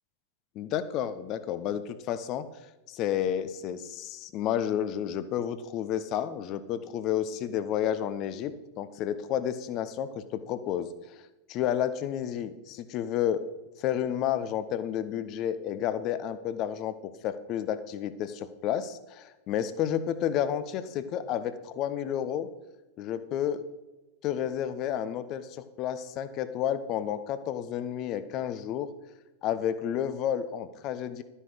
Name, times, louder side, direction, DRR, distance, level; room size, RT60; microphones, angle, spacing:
voice 1, 0.5-2.5 2.9-10.9 11.5-13.4 13.8-22.5 23.0-23.6 24.2-28.9 29.4-31.2, left 10 dB, 40° left, 13 dB, 1.0 m, -31 dB
12.5 x 10.0 x 5.0 m, 1.1 s
figure-of-eight pair, 90°, 0 cm